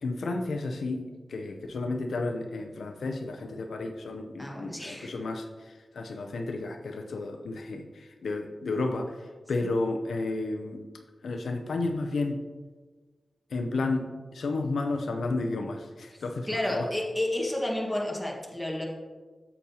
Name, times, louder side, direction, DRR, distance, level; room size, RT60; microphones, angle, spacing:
voice 1, 0.0-10.8 11.2-12.4 13.5-14.1 14.3-16.9, left 3 dB, 90° left, 4 dB, 0.6 m, -32 dB
voice 2, 4.4-5.1 16.1-18.8, left 1 dB, 5° left, -2 dB, 1.5 m, -31 dB
8.3 x 7.1 x 2.8 m, 1.4 s
wide cardioid pair, 80°, 0 cm